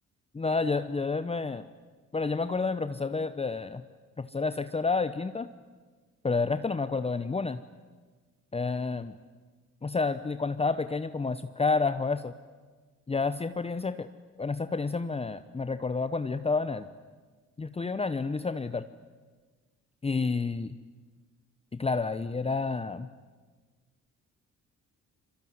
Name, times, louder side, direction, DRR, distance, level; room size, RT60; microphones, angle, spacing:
voice 1, 0.3-1.7 2.1-3.8 4.2-5.5 6.2-7.6 8.5-9.2 9.8-12.3 13.1-14.1 14.4-16.9 17.6-18.9 20.0-20.8 21.7-23.1, left 4 dB, 20° left, 12 dB, 0.9 m, -29 dB
26.0 x 22.5 x 9.5 m, 1.4 s
cardioid pair, 90°, 30 cm